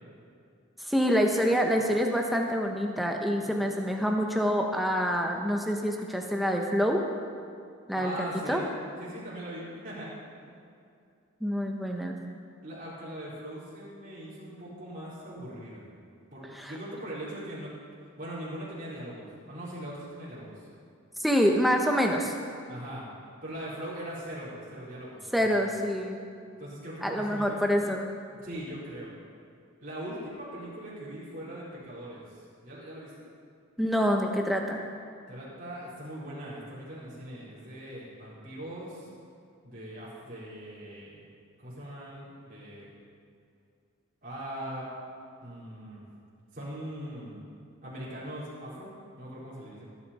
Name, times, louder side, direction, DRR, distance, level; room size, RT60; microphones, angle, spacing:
voice 1, 0.9-7.0 7.9-8.6 11.4-12.2 16.6-16.7 21.2-22.3 25.3-26.2 27.0-28.1 33.8-34.8, equal, ahead, 1 dB, 1.0 m, -26 dB
voice 2, 7.9-8.6 9.0-10.1 10.4-10.5 12.6-15.9 16.3-17.7 18.2-20.5 22.7-23.1 23.4-25.7 26.6-27.6 28.4-29.2 29.8-32.2 32.6-33.2 35.3-39.1 39.6-41.2 41.6-42.9 44.2-44.8 45.4-46.0 46.5-47.4 47.8-48.9 49.2-49.8, right 1 dB, 40° right, -9 dB, 4.2 m, -40 dB
19.5 x 10.5 x 4.3 m, 2.4 s
head